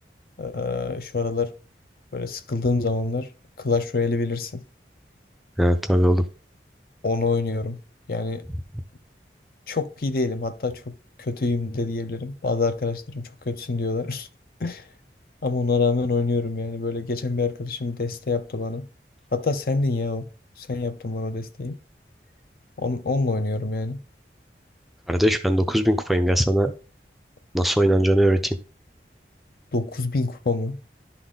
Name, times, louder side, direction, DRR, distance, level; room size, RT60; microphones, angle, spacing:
voice 1, 0.4-1.5 2.1-3.3 3.6-4.6 7.0-7.8 8.1-8.5 9.7-14.3 14.6-14.9 15.4-18.9 19.3-20.3 20.6-21.8 22.8-24.0 29.7-30.8, left 3 dB, 55° left, 0.6 m, -26 dB
voice 2, 5.6-6.2 25.1-26.7 27.5-28.6, equal, ahead, 0.4 m, -20 dB
11.0 x 4.0 x 3.7 m
head